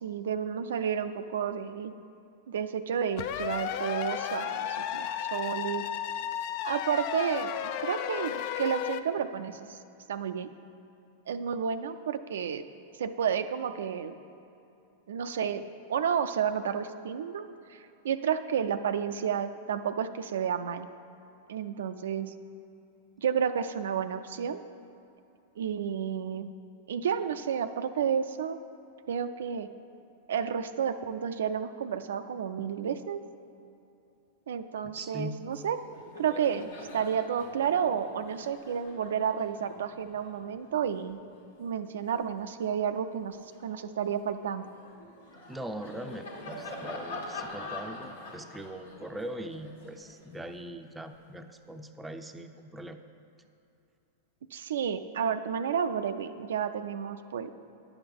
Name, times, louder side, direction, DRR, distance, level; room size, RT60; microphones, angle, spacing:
voice 1, 0.0-1.9 2.5-5.9 6.6-9.8 10.1-10.5 11.3-12.6 13.0-14.1 15.1-15.6 15.9-20.9 21.5-22.3 23.2-24.6 25.6-26.5 26.9-28.6 29.1-29.7 30.3-33.2 34.5-35.8 36.2-41.2 41.6-44.7 54.5-57.5, right 7 dB, 80° right, 9 dB, 0.4 m, -31 dB
sound 1, 3.2-9.0, left 10 dB, 55° left, 0.4 m, -33 dB
voice 2, 34.8-35.5 45.5-53.0, right 1 dB, 10° right, 6 dB, 0.5 m, -41 dB
Laughter, 35.4-35.6 35.8-42.6 43.1-51.3, left 2 dB, 80° left, 1.6 m, -45 dB
10.0 x 5.9 x 5.3 m, 2.7 s
hypercardioid pair, 110°, 0 cm